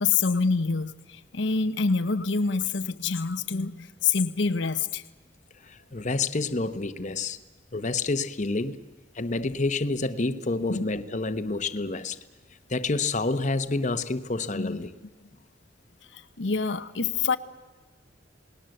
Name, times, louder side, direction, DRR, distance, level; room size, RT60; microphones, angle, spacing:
voice 1, 0.0-5.0 10.7-10.8 14.5-14.8 16.1-17.4, left 4 dB, 85° left, 0.9 m, -26 dB
voice 2, 5.7-7.4 7.7-8.8 9.2-12.2 12.7-14.9, left 3 dB, 40° left, 1.0 m, -28 dB
28.5 x 19.0 x 7.8 m
head